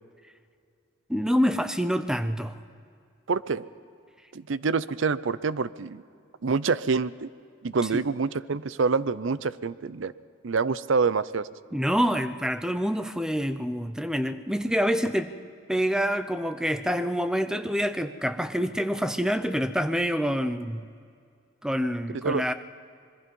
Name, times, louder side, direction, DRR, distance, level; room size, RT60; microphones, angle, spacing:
voice 1, 1.1-2.6 7.9-8.0 11.7-15.3 15.7-20.9 21.6-22.5, equal, 5° right, 10 dB, 0.7 m, -26 dB
voice 2, 3.3-3.6 4.3-6.0 6.4-7.3 7.6-10.1 10.4-11.5 22.2-22.5, right 4 dB, 70° right, 17 dB, 0.6 m, -26 dB
26.0 x 21.5 x 5.4 m, 2.3 s
head